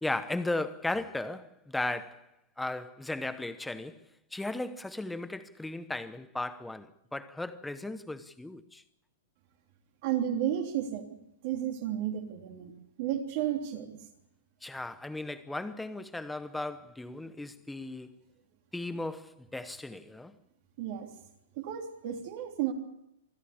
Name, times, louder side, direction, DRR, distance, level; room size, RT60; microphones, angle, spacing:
voice 1, 0.0-2.3 2.6-4.0 4.3-8.8 14.6-18.1 18.7-20.4, left 2 dB, 5° left, 0.8 m, -36 dB
voice 2, 10.0-12.7 13.0-14.0 20.8-21.1 21.6-22.7, right 10 dB, 40° right, 3.2 m, -32 dB
25.0 x 14.0 x 8.5 m
hypercardioid pair, 165°, 0 cm